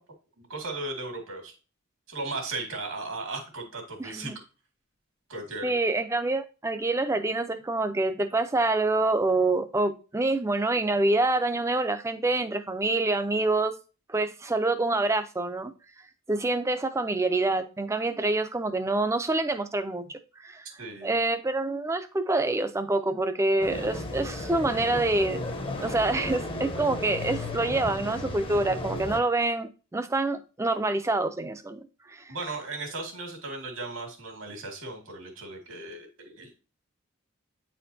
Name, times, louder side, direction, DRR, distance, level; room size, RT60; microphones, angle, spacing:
voice 1, 0.4-1.5 2.1-4.3 5.3-5.8 20.8-21.1 32.3-36.5, right 3 dB, 80° right, 3 dB, 2.1 m, -36 dB
voice 2, 4.0-4.3 5.6-13.7 14.1-15.7 16.3-20.0 20.4-20.6 21.0-25.4 25.8-31.8 32.1-32.2, right 2 dB, 15° right, 10 dB, 0.4 m, -26 dB
sound 1, 23.6-29.2, left 2 dB, 25° left, 0.7 m, -34 dB
8.9 x 4.3 x 2.7 m, 0.33 s
head